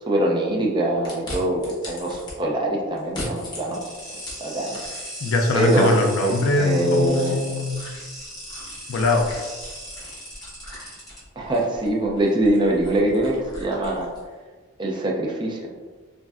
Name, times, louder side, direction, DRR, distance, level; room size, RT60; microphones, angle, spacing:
voice 1, 0.1-1.6 1.9-3.8 4.1-4.8 5.5-7.4 11.4-14.1 14.8-15.7, right 1 dB, 20° right, -2 dB, 0.3 m, -23 dB
sound 1, 1.0-2.3 3.0-5.3 5.7-14.3, left 1 dB, 20° left, 0.8 m, -40 dB
sound 2, 3.7-11.2, equal, 5° left, 1.4 m, -38 dB
voice 2, 5.2-7.9 8.9-9.3, left 2 dB, 65° left, 2 dB, 0.3 m, -22 dB
3.1 x 2.5 x 2.3 m, 1.4 s
head